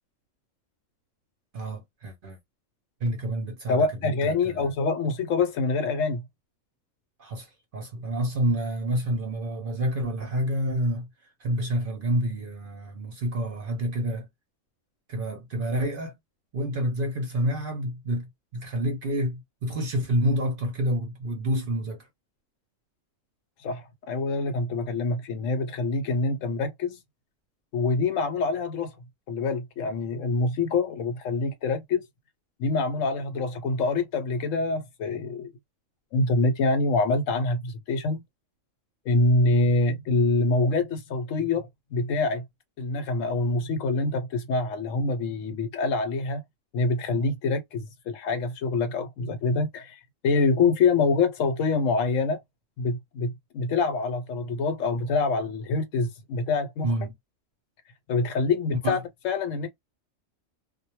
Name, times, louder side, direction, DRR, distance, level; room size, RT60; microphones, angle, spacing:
voice 1, 1.5-2.4 3.0-4.7 7.2-11.1 11.4-14.3 15.1-16.2 16.5-22.1 56.8-57.1 58.8-59.0, right 1 dB, 55° right, 0.6 m, -28 dB
voice 2, 3.7-6.2 23.6-27.0 27.7-28.9 29.3-32.0 32.6-35.5 36.1-38.2 39.1-42.4 42.8-46.4 46.7-52.4 52.8-56.9 58.1-59.0 59.2-59.7, left 3 dB, 75° left, 1.0 m, -25 dB
2.2 x 2.1 x 2.9 m
omnidirectional pair, 1.4 m